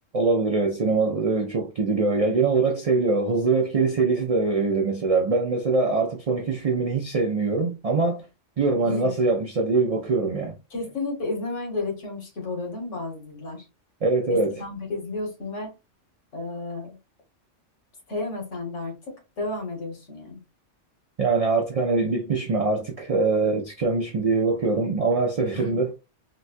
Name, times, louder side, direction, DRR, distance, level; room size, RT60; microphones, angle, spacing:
voice 1, 0.1-8.2 8.6-10.6 14.0-14.6 21.2-25.9, right 3 dB, 60° right, 0.3 m, -23 dB
voice 2, 8.8-9.2 10.7-13.7 14.6-15.7 16.3-17.0 18.1-20.4 25.5-25.8, left 2 dB, 70° left, 1.8 m, -32 dB
3.9 x 2.2 x 2.5 m
omnidirectional pair, 1.3 m